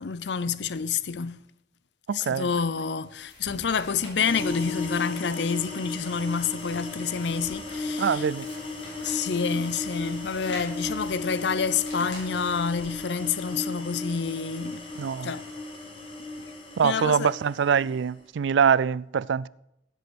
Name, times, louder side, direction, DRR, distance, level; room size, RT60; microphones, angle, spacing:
voice 1, 0.0-1.4 2.1-8.3 9.0-14.9 15.2-15.4 16.4-16.5 16.8-17.3, left 6 dB, 70° left, 0.6 m, -28 dB
voice 2, 2.1-2.5 8.0-8.5 15.0-15.3 16.8-19.5, right 7 dB, 80° right, 0.4 m, -24 dB
sound 1, 3.0-12.9, left 1 dB, 85° left, 4.8 m, -48 dB
sound 2, 4.1-18.1, left 2 dB, 30° left, 2.2 m, -35 dB
15.5 x 8.2 x 6.2 m
head